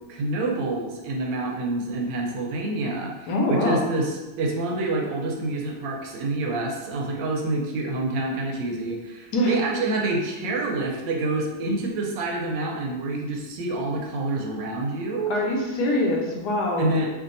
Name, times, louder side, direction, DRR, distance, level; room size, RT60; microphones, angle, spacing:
voice 1, 0.1-15.3 16.8-17.1, right 2 dB, 80° right, 0 dB, 1.3 m, -27 dB
voice 2, 3.3-3.8 9.3-9.6 15.3-16.9, left 1 dB, 70° left, -2 dB, 1.2 m, -23 dB
3.0 x 2.6 x 3.8 m, 1.1 s
omnidirectional pair, 2.0 m